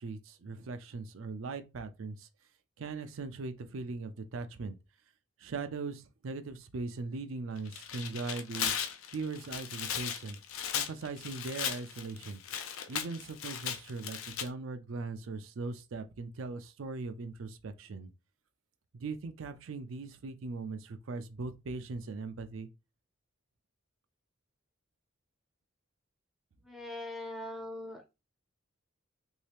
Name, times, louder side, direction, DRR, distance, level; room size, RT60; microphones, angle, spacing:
voice 1, 0.0-2.3 2.8-4.8 5.4-8.7 9.1-10.4 10.7-12.4 12.9-18.1 18.9-22.7, right 3 dB, 75° right, 0.4 m, -40 dB
Tearing, 7.6-14.5, left 9 dB, 85° left, 0.5 m, -37 dB
voice 2, 26.6-28.1, left 1 dB, ahead, 0.5 m, -41 dB
3.1 x 2.7 x 3.3 m
head